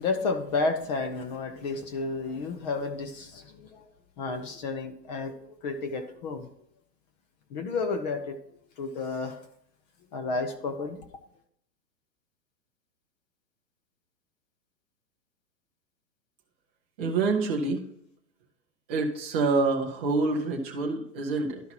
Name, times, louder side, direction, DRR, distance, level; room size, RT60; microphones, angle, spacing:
voice 1, 0.0-3.8 4.2-6.5 7.5-8.4 8.8-9.4 10.1-11.0, left 3 dB, 25° left, 7 dB, 0.6 m, -31 dB
voice 2, 17.0-17.8 18.9-21.6, right 3 dB, 10° right, -2 dB, 0.4 m, -26 dB
12.0 x 5.6 x 2.8 m, 0.72 s
hypercardioid pair, 135°, 50 cm